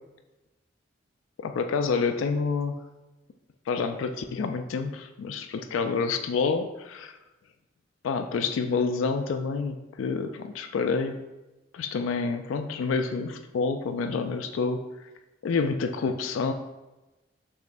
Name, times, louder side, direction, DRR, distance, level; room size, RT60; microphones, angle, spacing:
voice 1, 1.4-2.8 3.7-7.1 8.0-11.2 11.7-14.8 15.4-16.5, left 4 dB, 85° left, 6 dB, 0.3 m, -28 dB
6.2 x 3.0 x 2.5 m, 1.1 s
head